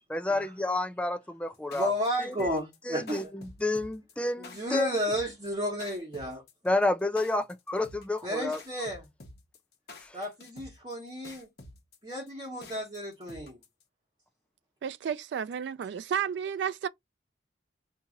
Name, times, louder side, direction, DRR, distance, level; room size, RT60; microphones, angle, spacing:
voice 1, 0.1-1.9 2.2-2.5 2.9-4.9 6.6-8.6 10.0-10.2, left 2 dB, 5° left, 0.3 m, -30 dB
sound 1, 1.5-13.8, left 2 dB, 65° left, 1.0 m, -49 dB
voice 2, 1.7-3.3 4.5-6.4 8.2-9.1 10.1-11.5 12.0-13.6, equal, 30° right, 1.4 m, -32 dB
voice 3, 14.8-16.9, right 8 dB, 80° right, 0.3 m, -32 dB
2.8 x 2.7 x 3.7 m
head